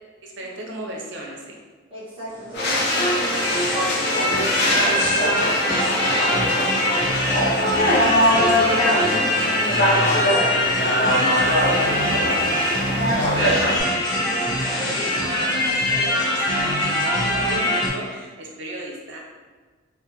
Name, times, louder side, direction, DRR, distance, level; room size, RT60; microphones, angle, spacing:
voice 1, 0.2-1.6 7.5-13.6 14.8-19.2, right 1 dB, 60° right, -1 dB, 0.5 m, -35 dB
voice 2, 1.9-6.5 14.1-15.5, right 1 dB, 25° right, -9 dB, 1.2 m, -37 dB
sound 1, 2.3-17.9, left 1 dB, 20° left, 0.8 m, -23 dB
sound 2, 2.5-13.8, left 1 dB, 55° left, 0.6 m, -22 dB
3.4 x 2.4 x 2.9 m, 1.4 s
head